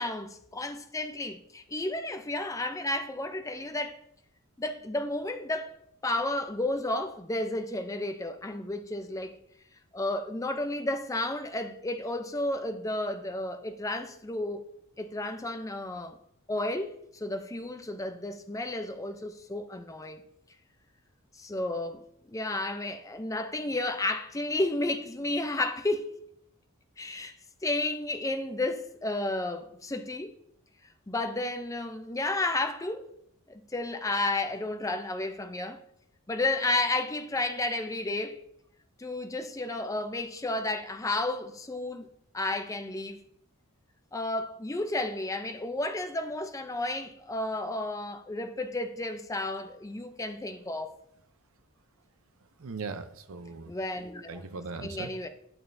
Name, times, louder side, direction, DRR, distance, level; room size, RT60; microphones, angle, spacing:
voice 1, 0.0-4.0 4.6-5.7 6.0-9.4 9.9-14.6 15.0-16.2 16.5-20.2 21.3-26.1 27.0-27.4 27.6-30.4 31.1-33.1 33.5-35.8 36.3-38.4 39.0-42.1 42.3-43.2 44.1-51.0 53.7-54.5 54.8-55.3, left 2 dB, 15° left, 0.5 m, -32 dB
voice 2, 52.6-53.8 54.3-55.2, right 4 dB, 70° right, 0.6 m, -39 dB
8.9 x 8.8 x 2.6 m
head